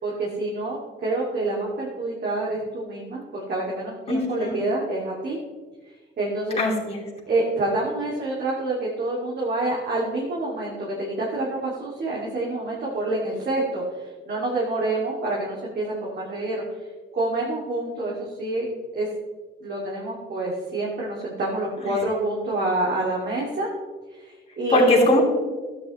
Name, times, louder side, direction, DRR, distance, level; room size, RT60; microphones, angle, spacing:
voice 1, 0.0-3.2 3.5-5.4 6.2-6.6 7.3-16.9 17.1-18.7 18.9-19.1 19.6-23.7 24.1-25.2, right 2 dB, 55° right, -4 dB, 2.4 m, -27 dB
voice 2, 4.1-4.6 6.6-7.0 24.7-25.2, left 1 dB, 30° left, -4 dB, 2.9 m, -20 dB
12.5 x 9.4 x 3.1 m, 1.4 s
cardioid pair, 90°, 20 cm